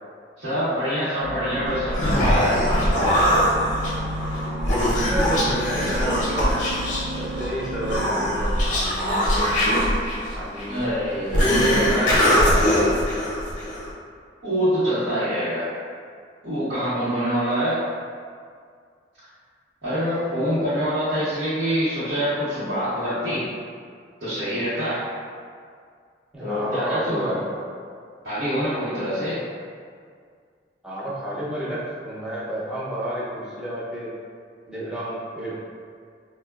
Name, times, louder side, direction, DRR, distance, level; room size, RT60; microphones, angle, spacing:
voice 1, 0.4-3.1 10.7-12.0 14.4-15.7 16.4-17.8 19.8-23.4 24.2-25.0 26.4-27.3 28.2-29.4, equal, 60° right, -15 dB, 0.9 m, -25 dB
sound 1, 1.2-8.1, equal, 85° right, 0.4 m, -33 dB
Human voice, 1.7-13.9, equal, 45° left, 0.6 m, -22 dB
voice 2, 4.9-6.6 7.1-9.4 10.4-10.9 11.3-12.9 26.3-27.5 30.8-34.2 34.7-35.6, equal, 5° right, -9 dB, 0.6 m, -29 dB
3.6 x 2.1 x 2.3 m, 2.1 s
head